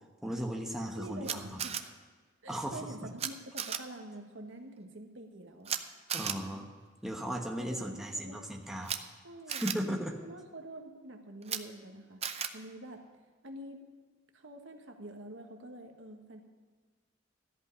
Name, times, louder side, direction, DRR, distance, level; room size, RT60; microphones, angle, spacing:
voice 1, 0.2-1.6 2.5-2.9 6.1-6.7 7.0-9.0 9.5-10.2, equal, ahead, 0 dB, 1.1 m, -36 dB
voice 2, 0.9-1.9 2.4-5.7 7.6-8.5 9.2-9.7 10.2-12.2 12.5-13.0 13.4-13.9 14.3-16.4, right 1 dB, 75° right, 4 dB, 1.4 m, -47 dB
Camera, 1.2-1.8 3.2-3.3 3.6-3.8 5.7-5.8 6.1-6.4 8.8-9.0 9.5-9.7 11.4-11.6 12.2-12.5, right 8 dB, 30° right, 0.6 m, -34 dB
14.0 x 5.5 x 9.5 m, 1.4 s
head